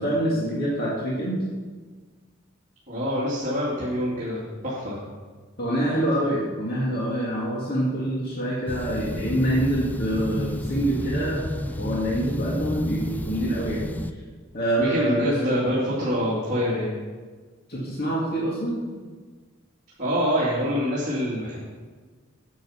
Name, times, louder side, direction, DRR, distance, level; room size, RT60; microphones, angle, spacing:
voice 1, 0.0-1.4 5.6-11.5 11.7-13.9 14.5-15.3 17.7-18.8, right 1 dB, 50° left, -5 dB, 2.1 m, -26 dB
voice 2, 2.9-5.0 14.8-16.9 20.0-21.6, equal, 35° right, -8 dB, 2.4 m, -25 dB
sound 1, 8.7-14.1, left 1 dB, 10° left, 0.4 m, -31 dB
9.4 x 7.9 x 5.7 m, 1.4 s
head